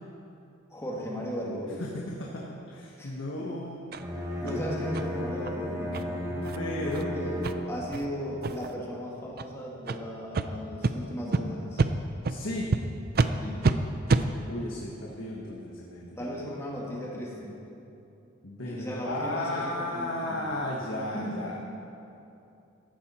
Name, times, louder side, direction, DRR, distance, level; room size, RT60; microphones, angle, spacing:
voice 1, 0.7-1.9 3.0-3.1 4.1-5.9 6.8-11.8 13.4-13.7 16.2-17.6 18.6-20.4 21.1-21.4, equal, 15° left, -4 dB, 2.1 m, -36 dB
voice 2, 1.8-3.8 4.4-4.7 5.7-7.1 12.3-12.8 14.5-16.3 18.4-21.6, left 1 dB, 80° left, -2 dB, 1.4 m, -35 dB
Bowed string instrument, 3.9-8.0, equal, 15° right, 1.4 m, -34 dB
sound 1, 3.9-4.0 4.5-4.6 4.9-5.1 5.4-5.5 5.9-6.0 6.4-6.6 6.9-7.0 7.4-7.5 7.9-8.0 8.4-8.7 9.3-9.5 9.8-10.0 10.3-10.5 10.8-10.9 11.3-11.4 11.8-11.9 12.2-12.4 12.7-12.8 13.1-13.3 13.6-13.7 14.1-14.2, right 3 dB, 50° right, 0.5 m, -26 dB
14.5 x 11.5 x 4.3 m, 2.8 s
head